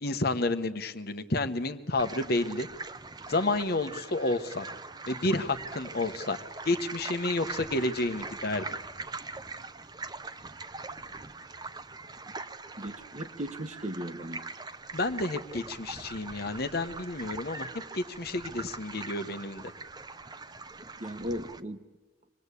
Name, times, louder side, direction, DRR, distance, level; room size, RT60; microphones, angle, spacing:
voice 1, 0.0-2.7 3.3-4.7 5.1-6.4 6.6-8.6 14.9-17.7 17.9-19.6, left 2 dB, 50° left, 9 dB, 1.2 m, -30 dB
sound 1, 2.0-21.6, right 3 dB, 20° right, 0.8 m, -42 dB
voice 2, 12.8-14.4 21.0-21.9, equal, 40° right, 9 dB, 1.3 m, -37 dB
26.0 x 20.5 x 8.4 m, 1.2 s
head